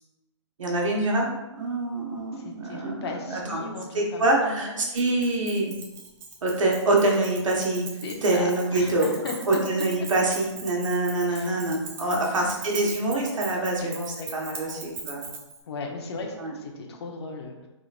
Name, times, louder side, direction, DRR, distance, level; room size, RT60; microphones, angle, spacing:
voice 1, 0.6-3.7 3.9-5.7 6.4-7.9 8.2-9.1 9.5-14.1 14.3-15.2 16.4-16.5, right 2 dB, 90° right, -2 dB, 1.4 m, -25 dB
voice 2, 2.3-4.8 8.0-9.3 11.3-11.6 12.2-12.5 14.2-14.3 14.6-14.8 15.7-17.5, left 4 dB, 55° left, 2 dB, 1.0 m, -37 dB
Keys jangling, 5.0-15.6, right 5 dB, 15° right, 0.6 m, -40 dB
5.1 x 3.8 x 2.5 m, 1.0 s
hypercardioid pair, 155°, 16 cm